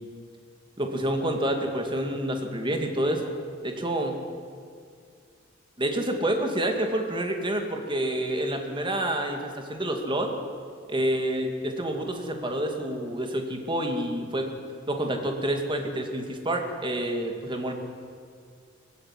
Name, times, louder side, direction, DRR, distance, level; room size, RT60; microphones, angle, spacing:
voice 1, 0.8-3.3 3.6-4.2 5.8-10.3 10.9-14.5 14.9-17.7, right 1 dB, 25° right, 3 dB, 2.4 m, -28 dB
20.5 x 16.0 x 9.7 m, 2.2 s
head